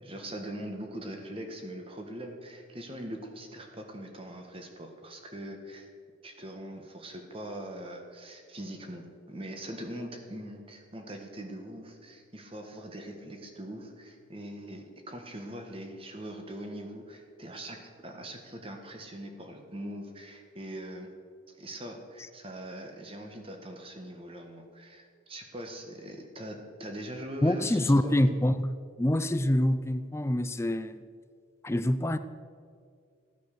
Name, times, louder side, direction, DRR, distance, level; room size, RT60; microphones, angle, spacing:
voice 1, 0.0-5.9 6.2-21.1 21.5-28.2, right 1 dB, 25° right, 1.5 m, -42 dB
voice 2, 27.4-31.0 31.6-32.2, left 1 dB, 15° left, 0.4 m, -26 dB
15.5 x 9.3 x 6.8 m
head